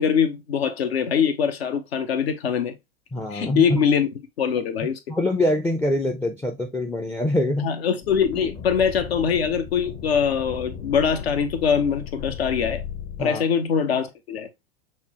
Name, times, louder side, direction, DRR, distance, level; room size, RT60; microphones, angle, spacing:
voice 1, 0.0-2.7 3.3-4.1 4.4-5.0 7.6-12.8 13.2-14.5, left 7 dB, 75° left, 0.8 m, -23 dB
voice 2, 3.1-3.9 5.1-7.7 13.2-13.5, left 1 dB, 5° left, 0.4 m, -24 dB
sound 1, 8.0-13.2, left 8 dB, 45° left, 1.0 m, -36 dB
5.8 x 2.1 x 2.8 m
hypercardioid pair, 90°, 31 cm